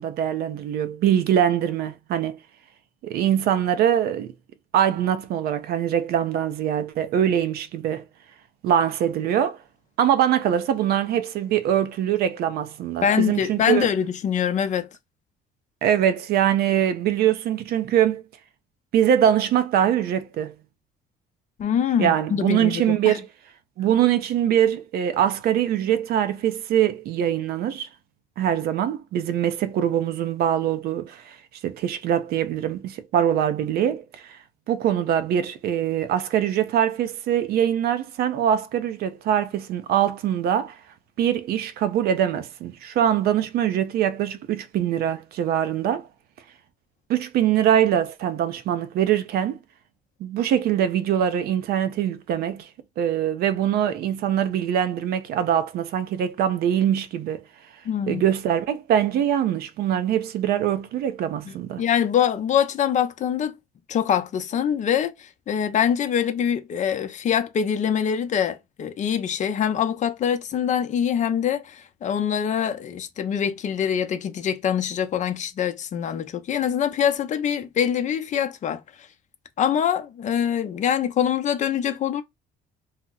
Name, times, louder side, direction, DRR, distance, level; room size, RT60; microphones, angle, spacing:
voice 1, 0.0-2.4 3.0-4.3 4.7-8.0 8.6-9.6 10.0-13.9 15.8-18.2 18.9-20.5 22.0-23.3 23.8-27.9 28.4-31.4 31.6-34.4 34.7-40.7 41.2-46.1 47.1-49.6 50.2-52.7 53.0-57.4 58.1-61.8, right 10 dB, 65° right, 0.5 m, -23 dB
voice 2, 13.0-14.9 21.6-23.2 57.9-58.2 61.5-63.5 63.9-78.8 79.6-82.2, left 8 dB, 45° left, 0.5 m, -24 dB
2.8 x 2.0 x 3.7 m
cardioid pair, 110°, 17 cm